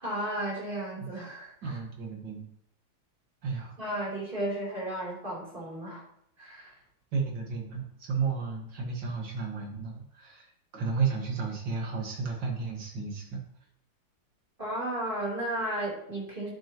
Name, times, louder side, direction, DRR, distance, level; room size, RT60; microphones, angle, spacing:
voice 1, 0.0-1.8 3.8-6.0 6.4-6.8 14.6-16.5, right 1 dB, 25° right, -5 dB, 4.0 m, -34 dB
voice 2, 1.6-2.5 3.4-3.8 7.1-13.4, right 5 dB, 65° right, 0 dB, 2.6 m, -33 dB
9.9 x 8.2 x 3.1 m, 0.73 s
omnidirectional pair, 2.1 m